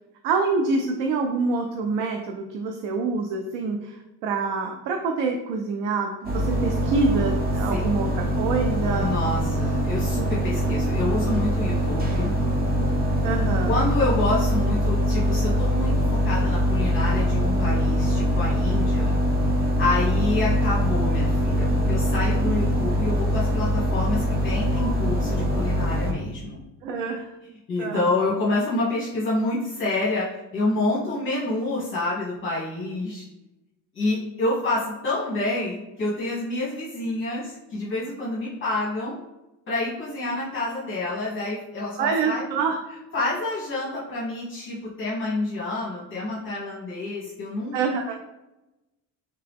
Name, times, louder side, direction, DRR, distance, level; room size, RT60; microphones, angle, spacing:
voice 1, 0.2-9.2 13.2-13.7 22.4-22.5 26.8-27.3 27.8-28.1 42.0-42.8 47.7-48.1, right 4 dB, 85° right, 3 dB, 0.5 m, -26 dB
sound 1, 6.2-26.1, equal, 25° right, 0.6 m, -23 dB
voice 2, 9.0-12.3 13.7-19.2 19.8-26.6 27.7-33.2 33.9-39.2 39.7-42.4 43.1-47.8, left 2 dB, 30° left, -7 dB, 1.1 m, -28 dB
3.4 x 2.8 x 3.5 m, 0.98 s
cardioid pair, 140°, 40 cm